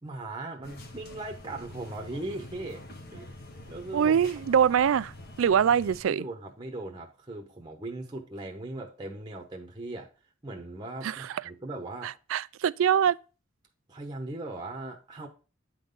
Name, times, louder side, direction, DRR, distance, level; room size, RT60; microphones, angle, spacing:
voice 1, 0.0-2.8 3.1-3.4 3.7-4.3 6.1-10.1 10.4-12.2 13.9-15.3, right 2 dB, 20° right, 0.9 m, -39 dB
sound 1, 0.6-6.0, left 1 dB, 50° left, 1.1 m, -46 dB
voice 2, 3.9-5.1 5.4-6.2 11.0-11.3 12.0-13.2, right 8 dB, 70° right, 0.3 m, -24 dB
9.0 x 3.9 x 5.2 m
head